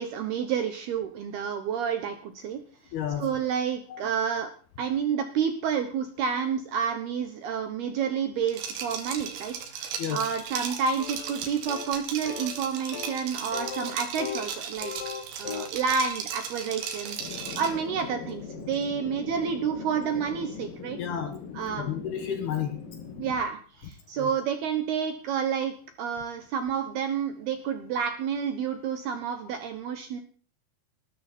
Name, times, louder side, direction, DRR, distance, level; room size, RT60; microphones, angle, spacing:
voice 1, 0.0-2.6 3.2-4.5 4.8-14.9 15.4-21.0 21.5-22.0 23.2-30.2, right 7 dB, 70° right, 7 dB, 2.6 m, -30 dB
voice 2, 2.9-3.4 3.9-4.1 10.0-10.2 21.0-21.4 21.7-22.8 24.2-24.3, left 9 dB, 65° left, 7 dB, 2.8 m, -32 dB
Liquid, 8.5-17.8, right 7 dB, 85° right, 5.1 m, -36 dB
sound 1, 11.0-11.4 11.7-12.0 12.3-12.6 12.9-13.2 13.5-14.5 14.8-15.8, left 7 dB, 50° left, 3.7 m, -37 dB
sound 2, 17.2-23.4, left 6 dB, 80° left, 4.6 m, -41 dB
19.5 x 13.5 x 4.5 m, 0.41 s
omnidirectional pair, 6.0 m